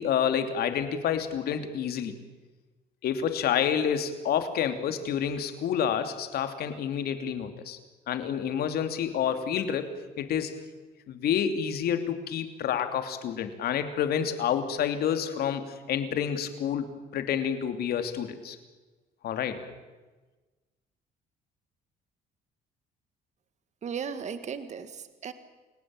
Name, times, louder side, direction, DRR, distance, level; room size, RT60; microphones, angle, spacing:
voice 1, 0.0-2.1 3.0-7.8 8.1-10.6 11.1-18.6 19.2-19.6, left 8 dB, 65° left, 8 dB, 2.9 m, -29 dB
voice 2, 23.8-25.3, right 7 dB, 45° right, 11 dB, 1.7 m, -36 dB
29.0 x 17.5 x 9.0 m, 1.2 s
cardioid pair, 110°, 17 cm